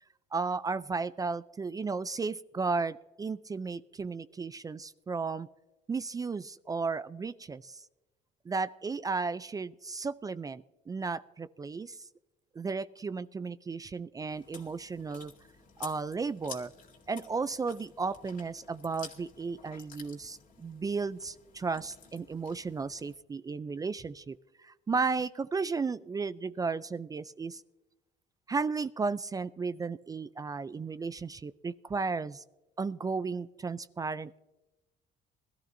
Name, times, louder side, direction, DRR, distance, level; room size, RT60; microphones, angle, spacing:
voice 1, 0.3-5.5 5.9-7.8 8.5-12.0 12.6-15.3 15.8-16.7 17.1-24.4 24.6-27.6 28.5-32.4 32.8-34.4, right 4 dB, 20° right, 16 dB, 0.4 m, -34 dB
Chewing mastication, 14.3-23.1, left 6 dB, 55° left, 2.1 m, -51 dB
21.0 x 13.0 x 2.6 m, 1.1 s
cardioid pair, 110°, 17 cm